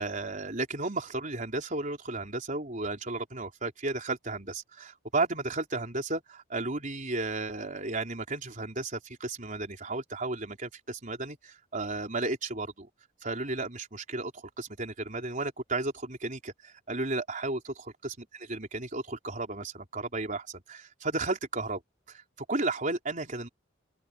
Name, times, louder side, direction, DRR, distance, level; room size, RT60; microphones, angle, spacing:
voice 1, 0.0-12.9 13.2-21.8 22.1-22.2 22.5-23.5, right 2 dB, 40° right, 4.1 m, -34 dB
open air
head